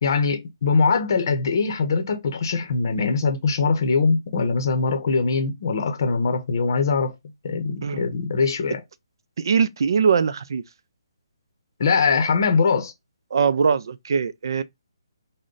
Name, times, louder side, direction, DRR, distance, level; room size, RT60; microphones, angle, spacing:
voice 1, 0.0-7.1 7.4-8.8 11.8-12.9, left 4 dB, 50° left, 0.7 m, -22 dB
voice 2, 9.4-10.6 13.3-14.6, right 6 dB, 60° right, 0.4 m, -21 dB
3.7 x 2.1 x 3.7 m
hypercardioid pair, 160°, 3 cm